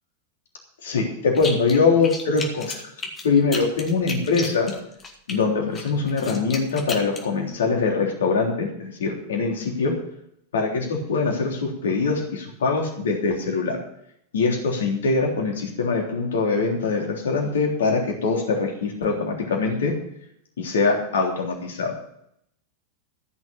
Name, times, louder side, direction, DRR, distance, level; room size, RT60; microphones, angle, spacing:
voice 1, 0.8-2.8 3.2-4.7 5.3-9.9 10.5-13.8 14.3-19.9 20.6-21.9, left 4 dB, 65° left, 1 dB, 3.4 m, -23 dB
sound 1, 1.3-1.8 2.0-5.4 5.7-7.2, left 4 dB, 25° left, 2.3 m, -33 dB
14.5 x 6.2 x 8.3 m, 0.73 s
figure-of-eight pair, 90°, 0 cm